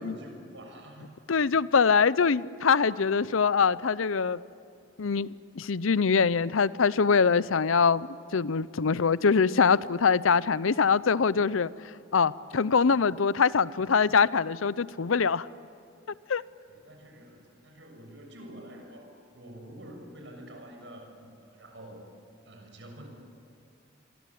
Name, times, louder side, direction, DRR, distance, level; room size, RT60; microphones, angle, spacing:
voice 1, 0.0-1.2 16.7-22.1 22.4-23.1, right 1 dB, 65° right, 3 dB, 6.7 m, -47 dB
voice 2, 1.3-4.4 5.0-8.1 8.3-11.7 12.1-15.5 16.3-16.4, left 5 dB, 90° left, 18 dB, 0.6 m, -23 dB
28.5 x 23.0 x 8.5 m, 2.5 s
head